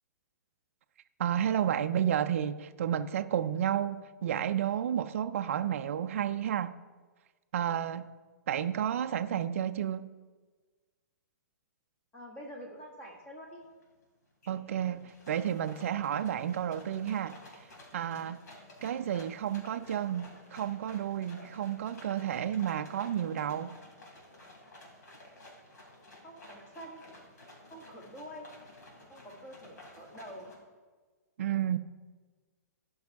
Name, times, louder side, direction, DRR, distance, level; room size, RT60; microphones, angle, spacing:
voice 1, 1.2-6.8 7.5-8.1 8.5-10.1 14.5-17.4 17.9-18.4 18.8-23.8 31.4-31.8, right 10 dB, 50° right, 0.4 m, -31 dB
voice 2, 12.1-13.6 26.2-27.0 27.7-28.5 29.1-30.5 31.7-31.8, equal, 15° left, 1.3 m, -47 dB
sound 1, 13.2-13.3 13.6-14.0 14.4-30.6, left 1 dB, 75° left, 3.2 m, -53 dB
12.0 x 5.4 x 4.6 m
hypercardioid pair, 175°, 9 cm